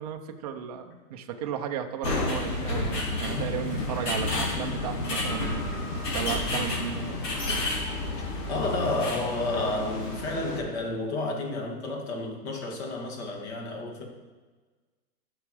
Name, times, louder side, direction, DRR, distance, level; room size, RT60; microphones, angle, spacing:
voice 1, 0.0-5.7 6.1-7.7 8.8-8.9, right 9 dB, 25° right, 5 dB, 0.5 m, -35 dB
sound 1, 2.0-10.6, left 2 dB, 90° left, 2.5 m, -30 dB
voice 2, 8.1-14.1, left 2 dB, 45° left, 2 dB, 2.0 m, -31 dB
12.0 x 5.9 x 4.8 m, 1.4 s
hypercardioid pair, 155°, 47 cm